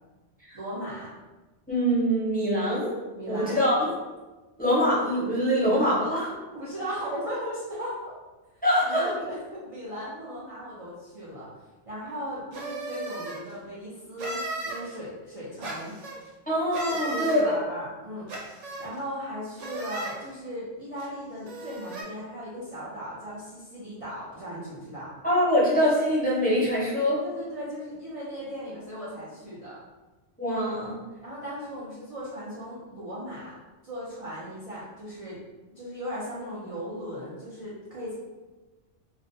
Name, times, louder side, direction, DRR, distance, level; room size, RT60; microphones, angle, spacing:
voice 1, 0.5-1.1 3.1-3.6 6.5-8.1 8.5-11.5 11.9-16.0 16.9-25.1 27.2-29.8 31.2-33.6 33.8-35.4 35.7-38.1, equal, 45° right, -9 dB, 0.5 m, -37 dB
voice 2, 1.7-2.9 3.3-3.9 4.6-6.3 8.6-9.1 16.5-17.5 25.2-27.2 30.4-30.9, equal, 10° left, -9 dB, 0.6 m, -24 dB
sound 1, 12.5-13.4 14.2-14.8 15.6-16.2 16.7-17.4 18.3-18.9 19.6-20.2 21.0-21.1 21.4-22.0, right 2 dB, 85° right, 0.9 m, -35 dB
2.4 x 2.1 x 2.6 m, 1.2 s
omnidirectional pair, 1.2 m